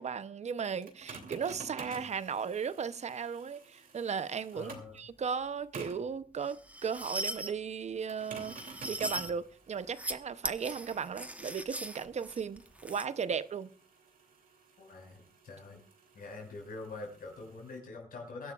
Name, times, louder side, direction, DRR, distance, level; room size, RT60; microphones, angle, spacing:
voice 1, 0.0-4.7 5.0-13.7, right 6 dB, 50° right, 0.7 m, -36 dB
sound 1, 0.8-5.0 5.7-6.1 8.1-17.8, right 4 dB, 70° right, 2.9 m, -51 dB
voice 2, 4.5-5.0 14.8-15.8 16.1-18.5, left 3 dB, 75° left, 5.5 m, -45 dB
sound 2, 6.4-7.5 8.2-9.3 9.8-10.1 10.4-13.1, right 1 dB, 10° right, 1.0 m, -39 dB
24.0 x 11.5 x 2.4 m
cardioid pair, 100°, 15 cm